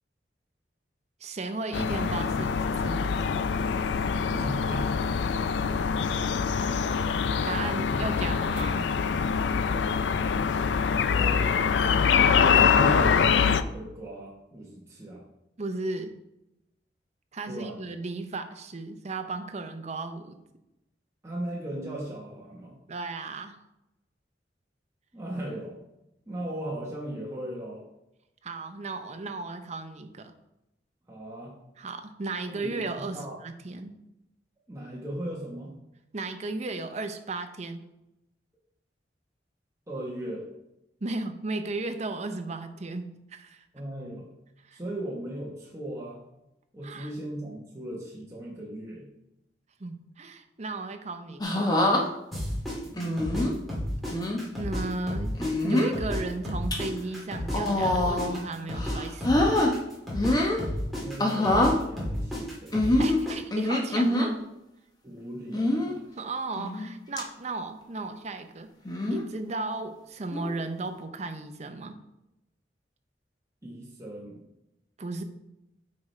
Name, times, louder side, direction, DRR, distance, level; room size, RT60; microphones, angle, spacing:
voice 1, 1.2-3.2 6.6-6.8 7.4-8.9 15.6-16.1 17.3-20.4 22.9-23.6 28.4-30.3 31.8-33.9 36.1-37.8 41.0-43.6 44.7-44.8 46.8-47.1 49.8-51.8 54.6-55.3 55.6-59.3 63.0-64.5 66.2-68.7 69.1-72.0 75.0-75.2, right 3 dB, 40° right, 7 dB, 0.6 m, -35 dB
sound 1, 1.7-13.6, left 6 dB, 85° left, 0.4 m, -24 dB
voice 2, 4.2-4.9 7.7-8.0 11.0-11.5 12.3-15.2 17.5-17.9 21.2-22.8 25.1-25.8 26.3-27.8 31.1-31.5 32.5-33.4 34.7-35.7 39.9-40.4 43.7-44.2 44.7-46.2 46.7-49.1 52.8-53.5 61.0-62.9 65.0-65.9 73.6-74.4, right 1 dB, 15° right, -4 dB, 1.1 m, -38 dB
sound 2, 51.4-52.0 53.0-53.5 54.1-54.4 55.4-56.0 56.5-56.8 57.5-58.4 58.8-59.7 60.1-60.6 61.2-61.8 62.7-64.3 65.5-65.9 66.6-66.9 67.2-67.3 68.9-69.3 70.3-70.6, left 1 dB, 25° left, 0.9 m, -25 dB
sound 3, 52.3-54.8 55.1-59.0 59.2-63.3, left 1 dB, ahead, 2.3 m, -32 dB
8.4 x 4.8 x 3.2 m, 0.88 s
head